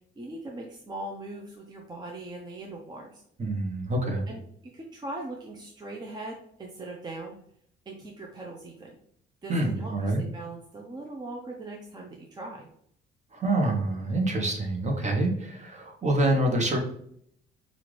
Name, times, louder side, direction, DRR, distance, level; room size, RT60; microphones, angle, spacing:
voice 1, 0.2-3.2 4.3-4.4 4.7-7.4 7.9-9.0 9.4-12.7, right 2 dB, 20° right, 0 dB, 0.6 m, -40 dB
voice 2, 3.4-4.2 9.5-10.2 13.3-16.8, right 1 dB, 40° right, 2 dB, 1.1 m, -26 dB
5.6 x 2.5 x 3.2 m, 0.69 s
cardioid pair, 105°, 19 cm